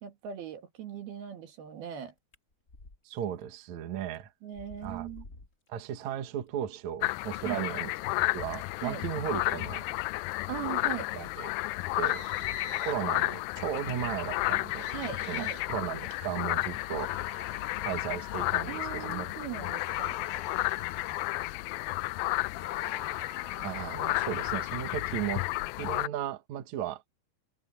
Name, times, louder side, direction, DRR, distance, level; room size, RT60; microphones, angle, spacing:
voice 1, 0.0-2.1 4.4-5.3 7.4-7.6 8.8-9.0 10.5-11.1 14.9-15.6 18.7-20.2, right 10 dB, 75° right, 4.0 m, -39 dB
sound 1, 2.3-3.0 3.4-3.5 4.1-4.2 4.5-5.7, left 2 dB, 25° left, 2.4 m, -49 dB
voice 2, 3.0-4.3 4.8-5.1 5.7-7.9 8.3-9.8 11.1-11.5 12.0-12.2 12.8-14.9 15.3-17.1 17.8-19.3 23.6-25.5 25.8-27.2, right 10 dB, 60° right, 2.4 m, -35 dB
sound 2, 7.0-26.1, left 20 dB, 80° left, 2.3 m, -32 dB
sound 3, 12.0-13.0 14.7-15.7 16.9-18.5 19.7-21.4 22.5-24.7, left 6 dB, 65° left, 4.5 m, -44 dB
omnidirectional pair, 4.5 m